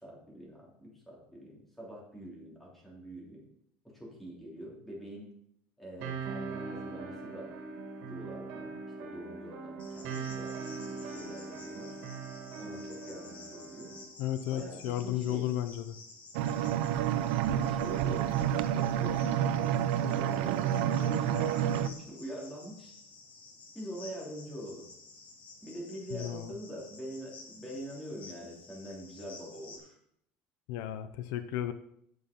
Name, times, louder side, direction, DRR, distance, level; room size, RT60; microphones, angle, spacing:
voice 1, 0.0-3.4 3.8-5.3 5.8-7.5 8.0-8.7 9.0-11.9 12.6-13.9 14.5-15.4 17.4-22.9 23.7-24.9 25.6-30.0, equal, 5° left, -4 dB, 3.3 m, -44 dB
sound 1, 6.0-14.0, right 4 dB, 65° right, 2.4 m, -41 dB
Cricket, 9.8-29.8, left 3 dB, 35° left, 1.9 m, -53 dB
voice 2, 14.2-16.0 26.1-26.5 30.7-31.7, left 12 dB, 70° left, 11 dB, 0.6 m, -34 dB
sound 2, 16.3-21.9, right 10 dB, 90° right, 0.5 m, -29 dB
9.5 x 7.0 x 5.3 m, 0.73 s
cardioid pair, 155°, 5 cm